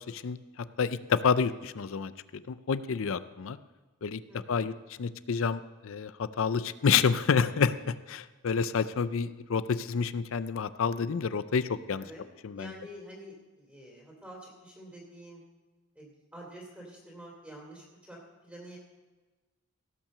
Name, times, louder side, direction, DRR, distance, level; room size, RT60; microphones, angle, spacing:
voice 1, 0.1-3.6 4.0-4.2 4.5-12.1 12.4-12.7, left 6 dB, 65° left, 14 dB, 0.5 m, -29 dB
voice 2, 4.3-4.6 12.0-12.3 12.5-15.4 15.9-18.8, right 1 dB, 5° right, -3 dB, 2.9 m, -48 dB
17.0 x 5.9 x 6.6 m, 1.3 s
head